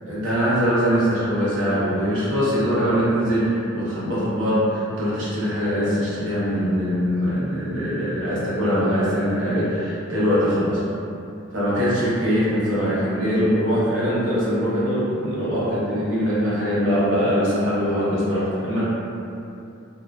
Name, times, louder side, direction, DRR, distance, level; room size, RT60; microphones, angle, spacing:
voice 1, 0.0-10.8 11.5-18.8, equal, 65° right, -10 dB, 0.8 m, -22 dB
2.5 x 2.2 x 2.3 m, 2.7 s
head